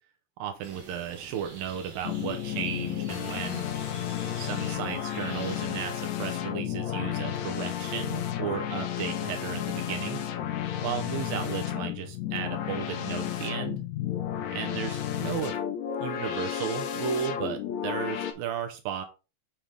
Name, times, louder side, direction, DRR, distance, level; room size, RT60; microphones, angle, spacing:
voice 1, 0.4-3.7 4.4-10.2 10.8-13.8 14.5-15.6 16.0-19.0, right 8 dB, 75° right, 5 dB, 2.4 m, -34 dB
sound 1, 0.6-5.7, right 4 dB, 60° right, 1.2 m, -47 dB
sound 2, 2.0-18.3, left 10 dB, 80° left, 1.6 m, -32 dB
7.5 x 5.7 x 3.4 m, 0.31 s
omnidirectional pair, 4.4 m